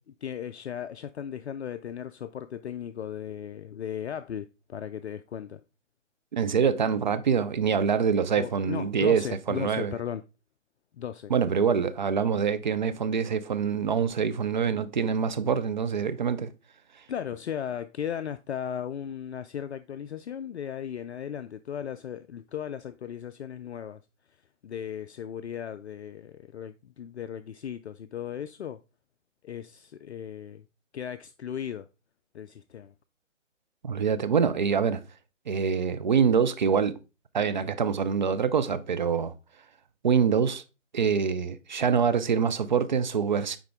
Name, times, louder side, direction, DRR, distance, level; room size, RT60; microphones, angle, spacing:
voice 1, 0.2-5.6 8.4-10.2 10.9-11.3 17.1-24.0 24.6-28.8 29.4-30.6 30.9-31.9 32.3-32.9 37.4-37.5, left 9 dB, 60° left, 0.5 m, -36 dB
voice 2, 6.3-9.9 11.3-16.5 33.8-35.0 35.5-36.9 37.3-39.3 40.0-40.6 40.9-43.6, right 6 dB, 40° right, 0.6 m, -25 dB
9.6 x 3.8 x 3.5 m
hypercardioid pair, 150°, 38 cm